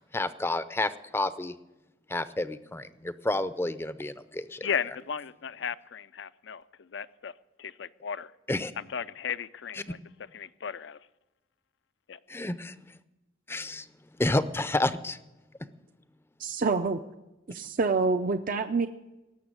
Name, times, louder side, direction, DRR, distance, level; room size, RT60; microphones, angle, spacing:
voice 1, 0.1-1.5 2.1-4.7 8.5-8.7 12.3-12.7 13.5-13.9 14.2-15.2, left 2 dB, 10° left, 13 dB, 0.5 m, -30 dB
voice 2, 4.6-7.3 7.6-8.3 8.8-10.0 10.3-11.0 12.1-12.2, left 7 dB, 65° left, 16 dB, 0.5 m, -35 dB
voice 3, 16.4-17.0 17.5-18.9, right 4 dB, 45° right, 8 dB, 0.5 m, -27 dB
18.5 x 7.0 x 9.7 m, 1.0 s
head